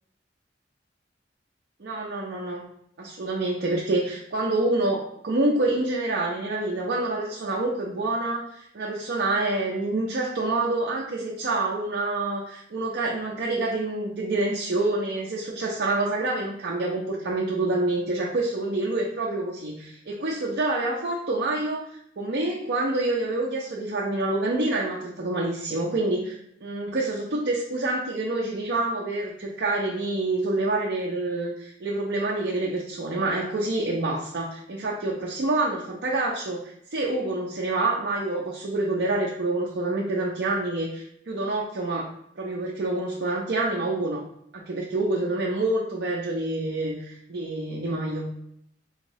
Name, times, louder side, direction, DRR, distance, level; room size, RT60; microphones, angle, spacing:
voice 1, 1.8-2.7 3.0-42.1 42.4-44.3 44.5-48.3, right 2 dB, 70° right, -4 dB, 0.6 m, -27 dB
4.3 x 2.7 x 3.0 m, 0.71 s
head